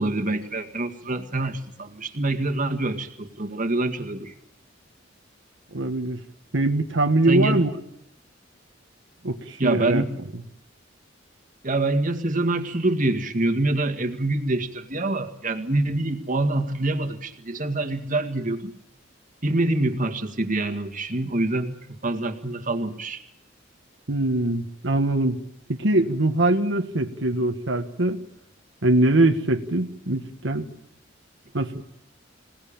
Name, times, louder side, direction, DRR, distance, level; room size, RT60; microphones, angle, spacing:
voice 1, 0.0-4.3 7.3-7.6 9.6-10.1 11.6-18.7 19.4-23.2, right 2 dB, 45° right, 7 dB, 2.0 m, -25 dB
voice 2, 5.7-6.2 6.5-7.7 9.2-10.0 24.1-25.4 25.7-28.2 28.8-30.7 31.5-31.8, right 2 dB, 75° right, 5 dB, 1.5 m, -22 dB
26.5 x 18.5 x 8.8 m, 0.76 s
head